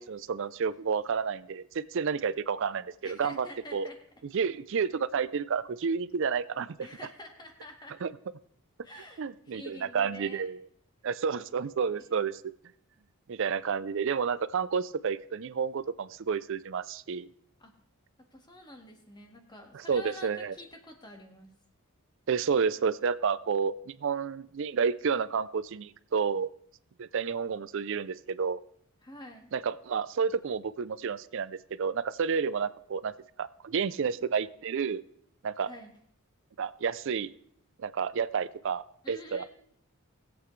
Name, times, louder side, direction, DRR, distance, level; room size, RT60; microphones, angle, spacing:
voice 1, 0.0-3.9 4.3-7.1 7.9-8.2 9.2-10.7 11.0-12.4 13.3-17.3 19.7-20.6 22.3-26.5 27.0-28.6 29.5-33.1 33.4-35.0 35.4-35.7 36.6-37.3 37.8-39.4, right 6 dB, 55° right, 16 dB, 0.4 m, -30 dB
voice 2, 3.0-4.0 6.8-7.9 8.8-10.5 17.6-17.7 18.3-21.5 29.0-29.5 35.6-35.9 39.0-39.4, left 1 dB, 20° left, 3 dB, 1.6 m, -47 dB
20.5 x 8.0 x 3.2 m, 0.65 s
head